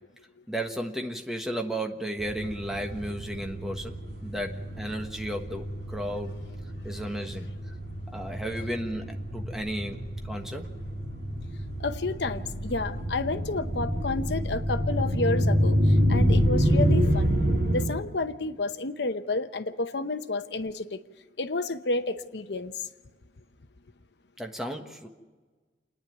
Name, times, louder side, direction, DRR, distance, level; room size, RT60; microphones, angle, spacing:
voice 1, 0.5-6.4 6.8-7.7 8.1-10.0 10.2-10.7 24.4-25.1, right 1 dB, ahead, 3 dB, 1.4 m, -34 dB
sound 1, 2.2-17.9, equal, 55° right, 8.0 m, -28 dB
voice 2, 11.8-17.3 17.7-21.0 21.4-22.7, left 3 dB, 70° left, 10 dB, 0.8 m, -30 dB
28.0 x 10.0 x 9.2 m, 1.4 s
head